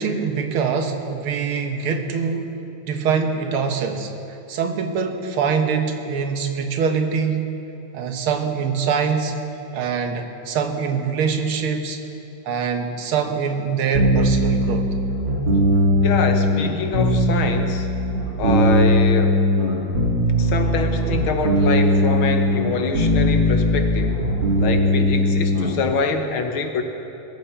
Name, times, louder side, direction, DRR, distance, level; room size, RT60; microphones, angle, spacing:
voice 1, 0.0-2.5 2.9-7.6 7.9-9.4 9.7-12.0 12.5-14.9, right 6 dB, 75° right, 5 dB, 1.9 m, -24 dB
sound 1, 13.9-25.8, equal, 60° right, 3.0 m, -19 dB
voice 2, 16.0-17.9 18.4-19.4 20.4-24.1 24.6-26.8, left 4 dB, 70° left, 5 dB, 1.9 m, -25 dB
21.0 x 13.5 x 4.5 m, 2.8 s
omnidirectional pair, 2.4 m